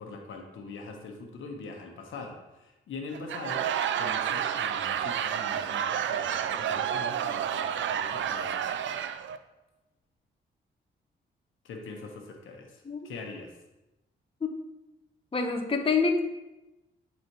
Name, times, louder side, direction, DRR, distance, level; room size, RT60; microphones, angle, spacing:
voice 1, 0.0-3.7 4.0-9.0 11.6-13.5, left 3 dB, 75° left, 2 dB, 1.1 m, -43 dB
Laughter / Crowd, 3.1-9.4, right 9 dB, 70° right, 0.5 m, -30 dB
voice 2, 15.3-16.2, left 4 dB, 25° left, 4 dB, 0.9 m, -26 dB
9.6 x 4.1 x 3.0 m, 1.0 s
cardioid pair, 65°, 20 cm